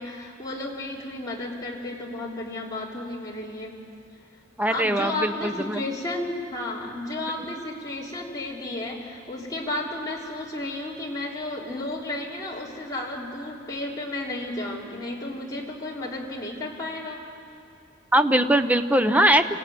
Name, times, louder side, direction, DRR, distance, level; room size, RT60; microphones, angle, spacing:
voice 1, 0.0-3.8 4.7-17.2, left 2 dB, 20° left, -4 dB, 3.4 m, -33 dB
voice 2, 4.6-5.8 18.1-19.5, right 1 dB, 10° right, 9 dB, 0.7 m, -21 dB
26.5 x 16.5 x 9.4 m, 2.5 s
head